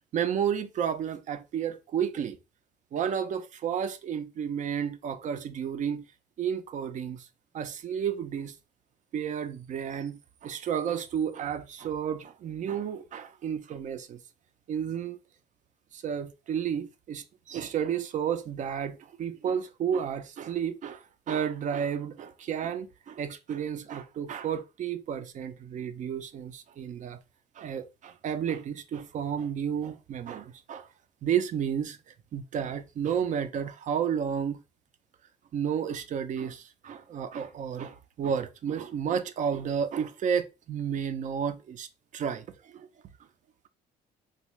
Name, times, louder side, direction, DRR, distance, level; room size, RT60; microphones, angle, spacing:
voice 1, 0.1-2.4 2.9-6.0 6.4-7.3 7.5-8.6 9.1-14.2 14.7-15.2 15.9-27.2 27.6-30.9 31.2-32.0 32.3-34.6 35.5-41.9 42.1-42.9, right 8 dB, 45° right, 0.5 m, -32 dB
3.5 x 2.4 x 3.1 m
cardioid pair, 110°, 17 cm